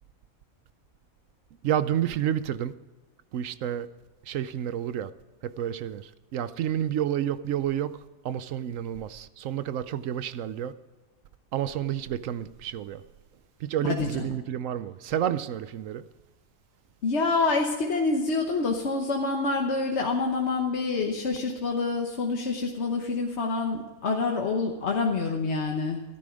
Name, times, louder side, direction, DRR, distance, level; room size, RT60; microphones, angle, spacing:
voice 1, 1.6-2.7 3.3-3.9 4.3-5.1 5.4-8.0 8.2-10.7 11.5-13.0 13.6-16.0, right 10 dB, 70° right, 0.9 m, -30 dB
voice 2, 13.8-14.4 17.0-26.0, left 3 dB, 55° left, 1.3 m, -27 dB
13.5 x 12.0 x 5.1 m
omnidirectional pair, 1.5 m